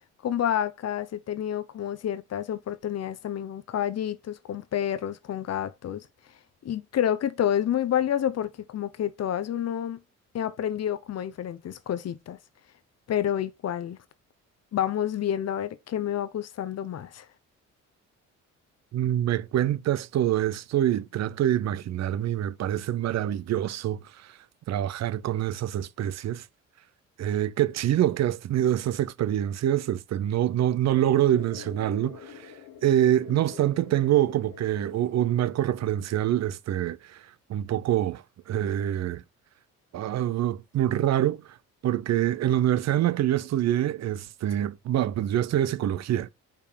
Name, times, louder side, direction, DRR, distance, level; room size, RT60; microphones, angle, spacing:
voice 1, 0.2-6.1 6.6-10.0 10.3-12.4 13.1-14.0 14.7-17.3 44.6-44.7, left 10 dB, 55° left, 0.9 m, -29 dB
voice 2, 18.9-24.3 24.7-26.4 27.2-32.5 32.8-39.2 39.9-41.4 41.8-46.3, right 12 dB, 60° right, 0.6 m, -25 dB
sound 1, 31.2-36.2, left 10 dB, 90° left, 1.3 m, -46 dB
5.3 x 4.7 x 5.1 m
cardioid pair, 90°, 30 cm